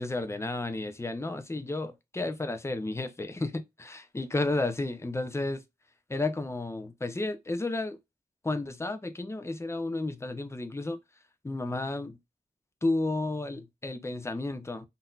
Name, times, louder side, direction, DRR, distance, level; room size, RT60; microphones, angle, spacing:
voice 1, 0.0-5.6 6.1-8.0 8.4-11.0 11.4-12.2 12.8-14.9, left 2 dB, 15° left, 0.5 m, -32 dB
3.9 x 2.6 x 2.3 m
wide cardioid pair, 115°, 17 cm